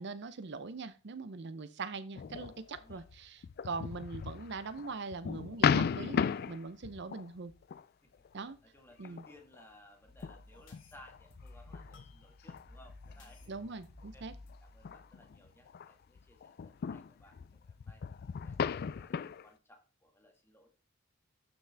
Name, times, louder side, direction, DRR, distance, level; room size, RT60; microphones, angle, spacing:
voice 1, 0.0-7.5 8.3-8.6 9.0-9.2 13.5-14.3, right 4 dB, 60° right, 13 dB, 0.6 m, -42 dB
sound 1, 2.2-7.8 8.2-8.5 9.0-9.6 10.2-15.9 16.2-19.4, left 6 dB, 50° left, 0.3 m, -36 dB
voice 2, 8.6-13.5 14.1-14.3 14.6-18.0 18.4-20.7, left 1 dB, 10° left, 3 dB, 1.7 m, -60 dB
sound 2, 10.1-15.7, left 1 dB, 65° left, 2.5 m, -56 dB
12.5 x 6.0 x 3.4 m, 0.35 s
head